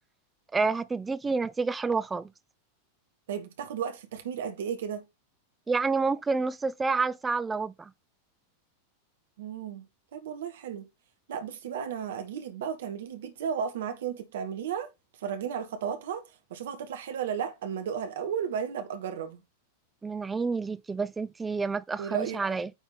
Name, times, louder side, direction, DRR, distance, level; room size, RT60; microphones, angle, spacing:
voice 1, 0.5-2.3 5.7-7.9 20.0-22.7, right 4 dB, 15° right, 0.5 m, -29 dB
voice 2, 3.3-5.0 9.4-9.8 10.1-10.9 11.3-14.9 15.2-16.2 16.5-19.4 22.0-22.4, right 7 dB, 60° right, 1.4 m, -34 dB
9.2 x 3.5 x 4.0 m
figure-of-eight pair, 90°, 0 cm